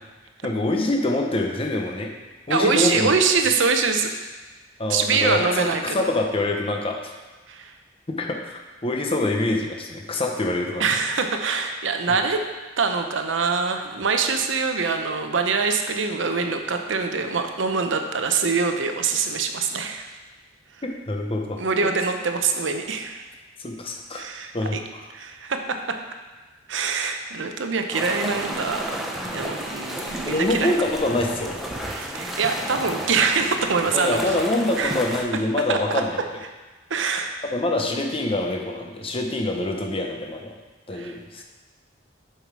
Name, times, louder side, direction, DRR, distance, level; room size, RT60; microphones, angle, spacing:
voice 1, 0.4-2.1 2.5-3.1 4.8-7.1 8.1-10.9 20.8-21.6 23.6-24.3 24.5-25.0 30.3-31.6 33.9-36.2 37.5-40.6 40.9-41.4, left 2 dB, 30° left, 1 dB, 0.8 m, -25 dB
voice 2, 2.5-4.1 4.9-6.0 7.5-7.7 10.8-12.4 12.8-20.1 21.6-23.2 24.1-24.8 25.1-26.0 26.7-30.7 31.9-34.3 34.8-35.0 35.7-36.0 36.9-37.3 40.9-41.2, right 5 dB, 80° right, 6 dB, 0.7 m, -24 dB
sound 1, 27.9-35.2, equal, ahead, 0.7 m, -32 dB
7.1 x 5.8 x 4.7 m, 1.3 s
head